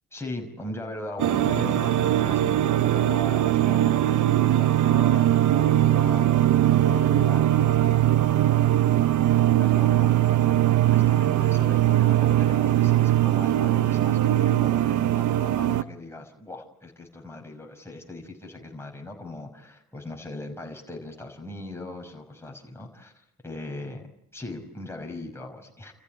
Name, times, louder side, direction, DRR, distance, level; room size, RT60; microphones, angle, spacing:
voice 1, 0.1-8.0 8.5-24.1 24.3-25.9, left 2 dB, 10° left, 1 dB, 5.6 m, -39 dB
sound 1, 1.2-15.8, right 13 dB, 65° right, 0.9 m, -21 dB
29.5 x 14.5 x 9.1 m, 0.82 s
supercardioid pair, 70°, 32 cm